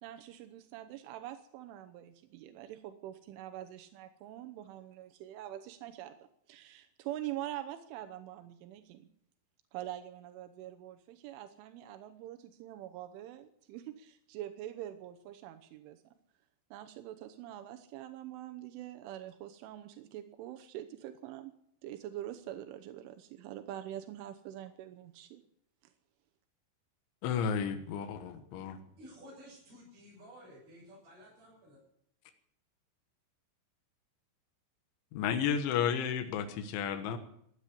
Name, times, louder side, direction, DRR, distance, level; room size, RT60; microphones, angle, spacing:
voice 1, 0.0-9.1 9.7-16.0 16.7-21.5 21.8-25.4, right 12 dB, 85° right, 7 dB, 3.4 m, -44 dB
voice 2, 27.2-28.8 35.1-37.2, left 7 dB, 80° left, 7 dB, 3.7 m, -32 dB
voice 3, 28.7-31.8, equal, 50° right, -7 dB, 9.0 m, -54 dB
16.0 x 10.5 x 8.5 m, 0.71 s
omnidirectional pair, 5.6 m